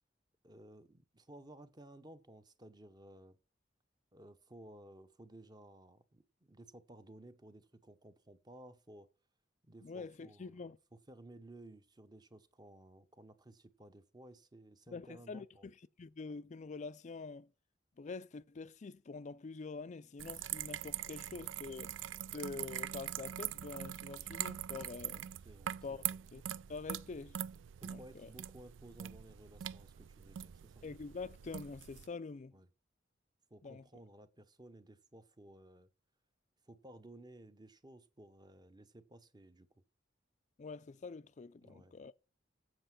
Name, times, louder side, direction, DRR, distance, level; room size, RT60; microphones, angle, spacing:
voice 1, 0.4-3.4 4.1-9.1 9.6-15.7 25.4-26.2 27.8-30.8 32.5-32.7 33.5-35.9 36.7-39.7 41.6-42.0, right 1 dB, 20° right, 0.9 m, -56 dB
voice 2, 9.8-10.8 14.9-17.5 18.0-22.0 22.3-25.3 25.8-26.0 26.3-26.4 26.7-27.4 27.9-28.3 30.8-32.6 33.6-33.9 40.6-42.1, left 4 dB, 40° left, 0.4 m, -46 dB
sound 1, 20.2-32.1, right 11 dB, 85° right, 0.4 m, -43 dB
7.7 x 7.7 x 6.0 m
head